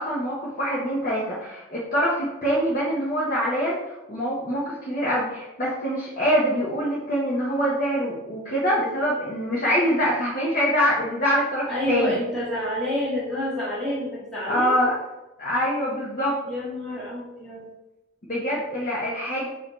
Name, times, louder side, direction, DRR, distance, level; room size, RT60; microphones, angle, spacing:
voice 1, 0.0-12.2 14.4-14.9 15.4-16.4 18.3-19.5, equal, 40° left, -7 dB, 0.9 m, -24 dB
voice 2, 11.6-14.8 16.4-17.7, left 1 dB, 5° left, -9 dB, 1.6 m, -28 dB
6.4 x 2.8 x 3.0 m, 0.99 s
head